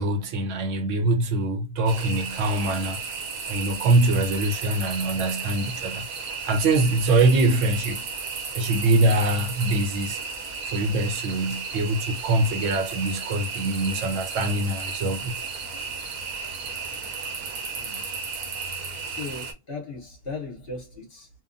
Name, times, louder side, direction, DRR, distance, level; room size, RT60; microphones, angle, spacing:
voice 1, 0.0-3.0 3.5-6.1 6.4-8.0 8.5-10.2 10.7-15.4, right 2 dB, 65° right, 0.9 m, -23 dB
sound 1, 1.9-19.5, right 5 dB, 85° right, 1.2 m, -34 dB
voice 2, 18.7-21.3, left 3 dB, 50° left, 0.9 m, -38 dB
2.9 x 2.2 x 2.5 m
omnidirectional pair, 1.6 m